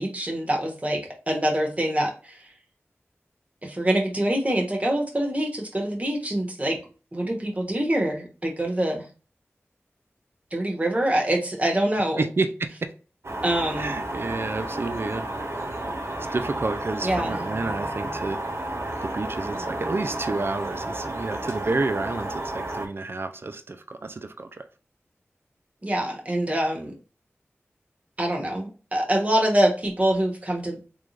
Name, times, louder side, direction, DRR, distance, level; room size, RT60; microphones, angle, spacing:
voice 1, 0.0-2.4 3.6-6.8 7.1-9.1 10.5-12.2 13.4-13.9 17.0-17.4 25.8-26.9 28.2-30.8, right 1 dB, 30° right, 0 dB, 1.1 m, -25 dB
voice 2, 12.2-12.9 13.8-15.7 16.3-18.4 18.7-24.7, right 3 dB, 55° right, 9 dB, 0.4 m, -30 dB
sound 1, 13.2-22.9, right 1 dB, 70° right, 0.8 m, -32 dB
3.4 x 3.2 x 2.5 m, 0.35 s
wide cardioid pair, 55°, 5 cm